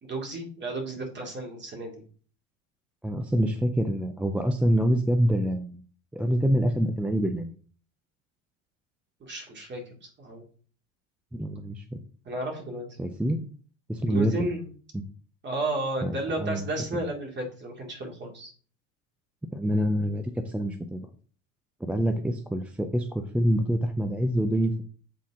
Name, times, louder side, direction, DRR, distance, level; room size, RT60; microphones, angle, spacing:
voice 1, 0.0-2.0 9.2-10.4 12.2-13.0 14.0-14.7 15.4-18.5, right 1 dB, 25° right, 1 dB, 2.5 m, -33 dB
voice 2, 3.0-5.8 6.1-7.5 11.3-12.0 13.0-13.5 13.9-14.5 14.9-15.0 16.0-16.6 19.5-21.1 21.8-24.8, equal, 5° right, 8 dB, 0.3 m, -26 dB
7.5 x 4.2 x 3.7 m, 0.42 s
supercardioid pair, 110°, 39 cm